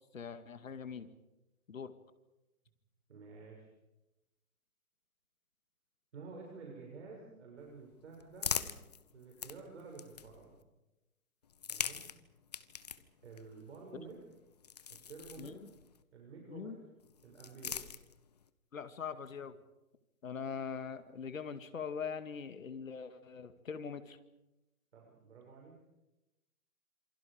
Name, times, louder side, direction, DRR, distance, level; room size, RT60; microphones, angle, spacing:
voice 1, 0.1-1.1 1.7-1.9 15.4-15.6 16.5-16.8 18.7-19.6 20.2-24.2, left 6 dB, 65° left, 10 dB, 2.2 m, -42 dB
voice 2, 3.1-3.7 6.1-8.7 9.1-10.6 11.7-12.0 13.2-14.2 14.9-15.7 16.1-16.8 17.2-17.8 24.9-25.8, right 4 dB, 50° right, -1 dB, 6.9 m, -51 dB
sound 1, 7.6-10.6 11.4-16.0 17.0-18.5, left 7 dB, 30° left, 0.9 m, -43 dB
27.5 x 27.0 x 5.1 m, 0.98 s
hypercardioid pair, 165°, 44 cm